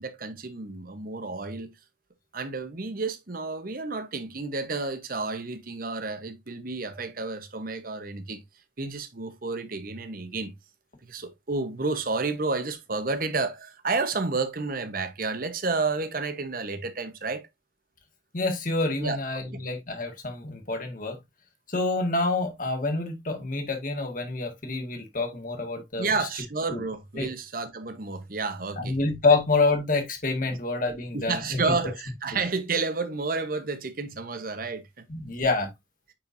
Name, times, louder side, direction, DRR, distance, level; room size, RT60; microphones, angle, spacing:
voice 1, 0.0-1.7 2.3-8.4 8.8-10.5 11.1-17.5 19.0-19.6 26.0-29.0 30.5-30.6 31.1-35.1, right 3 dB, 50° right, 1.0 m, -31 dB
voice 2, 18.3-21.2 21.7-26.3 26.7-26.8 27.2-27.3 28.8-31.6 35.1-35.7, left 3 dB, 45° left, 1.9 m, -27 dB
8.7 x 4.5 x 2.6 m
head